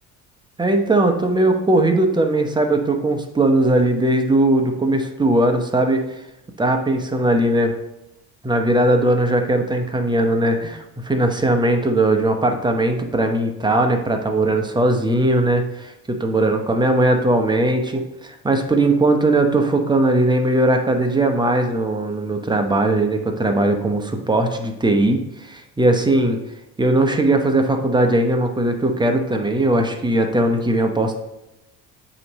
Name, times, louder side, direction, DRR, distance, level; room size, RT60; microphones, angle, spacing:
voice 1, 0.6-6.0 6.6-7.7 8.4-26.4 26.8-31.2, right 2 dB, 10° right, 4 dB, 0.9 m, -19 dB
8.2 x 3.1 x 4.1 m, 0.90 s
supercardioid pair, 100°, 36 cm